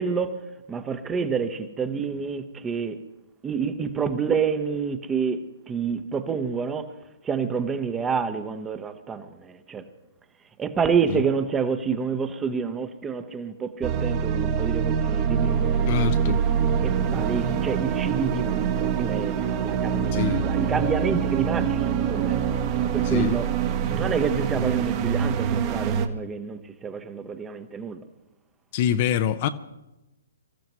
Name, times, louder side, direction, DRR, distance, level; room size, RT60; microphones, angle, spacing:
voice 1, 0.0-3.0 3.4-6.9 7.2-9.8 10.6-16.1 16.8-22.5 22.8-23.5 23.9-28.0, right 6 dB, 15° right, 1.0 m, -28 dB
sound 1, 13.8-26.1, right 7 dB, 35° right, 1.3 m, -25 dB
voice 2, 15.9-16.4 20.1-20.5 23.1-23.4 28.7-29.5, left 10 dB, 40° left, 0.7 m, -25 dB
26.0 x 14.0 x 3.1 m
figure-of-eight pair, 130°, 0 cm